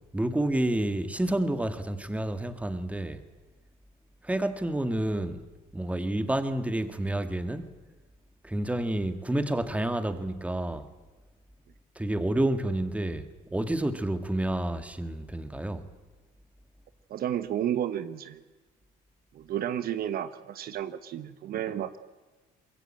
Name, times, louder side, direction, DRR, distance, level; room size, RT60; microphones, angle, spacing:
voice 1, 0.1-3.2 4.2-5.4 5.7-7.7 8.4-10.9 12.0-15.9, right 1 dB, 10° right, 10 dB, 2.0 m, -29 dB
voice 2, 17.1-18.4 19.3-22.0, right 10 dB, 65° right, 12 dB, 1.2 m, -32 dB
24.0 x 22.0 x 8.9 m, 1.2 s
cardioid pair, 110°, 17 cm